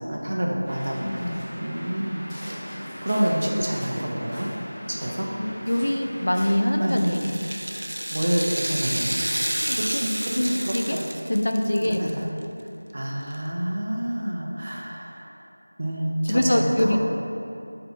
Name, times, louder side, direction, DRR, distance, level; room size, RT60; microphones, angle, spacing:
voice 1, 0.1-2.3 3.0-4.5 4.9-5.3 6.8-7.0 8.1-9.2 9.8-11.0 11.9-12.3 12.9-15.3 15.8-16.9, right 1 dB, 40° right, -2 dB, 0.7 m, -28 dB
Waves surf, 0.7-6.5, equal, 5° left, 0.7 m, -38 dB
voice 2, 1.0-1.5 5.4-7.3 9.7-10.0 10.4-11.0 11.3-12.4 16.2-17.0, left 1 dB, 60° left, 3 dB, 0.5 m, -24 dB
Rattle (instrument), 6.8-12.1 12.4-12.5 13.3-13.4, right 1 dB, 75° right, 0.4 m, -30 dB
4.6 x 3.8 x 5.5 m, 2.7 s
figure-of-eight pair, 175°, 0 cm